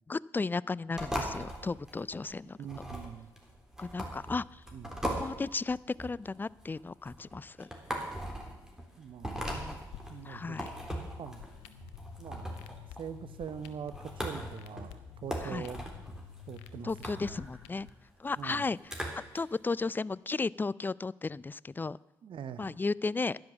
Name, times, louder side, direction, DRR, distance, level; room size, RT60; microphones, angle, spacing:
voice 1, 0.1-2.6 3.8-4.6 5.2-7.7 9.6-9.8 10.2-10.7 15.4-15.7 16.8-17.9 18.2-18.9 19.3-22.0 22.6-23.4, left 3 dB, 20° left, 22 dB, 0.4 m, -34 dB
sound 1, 0.9-19.4, equal, 5° right, 3.5 m, -40 dB
voice 2, 2.6-3.3 4.7-5.0 9.0-9.5 10.1-10.6 11.2-11.5 12.2-12.6 13.0-15.8 16.5-16.9 17.2-17.4 18.4-18.6 22.2-22.8, right 8 dB, 55° right, 13 dB, 0.9 m, -43 dB
sound 2, 9.9-17.9, left 11 dB, 80° left, 0.7 m, -50 dB
10.5 x 10.5 x 7.2 m, 0.98 s
hypercardioid pair, 45°, 10 cm